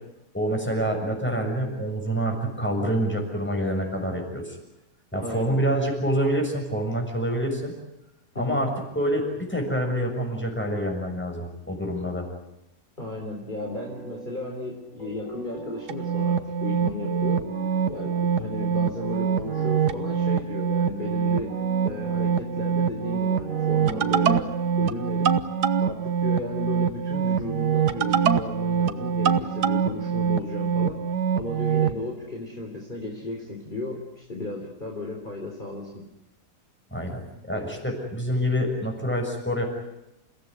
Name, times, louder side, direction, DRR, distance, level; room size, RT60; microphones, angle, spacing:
voice 1, 0.3-4.6 5.1-7.7 8.3-12.3 36.9-39.6, equal, 5° left, 2 dB, 6.7 m, -27 dB
voice 2, 5.1-5.6 8.4-8.6 13.0-17.4 17.9-21.5 21.8-24.5 24.8-25.3 25.8-31.0 31.4-36.0, left 2 dB, 30° left, 0 dB, 3.9 m, -35 dB
sound 1, 13.6-25.3, equal, 55° left, 8.1 m, -41 dB
sound 2, 15.9-32.0, right 7 dB, 80° right, 1.7 m, -24 dB
30.0 x 17.0 x 9.7 m, 0.89 s
omnidirectional pair, 1.7 m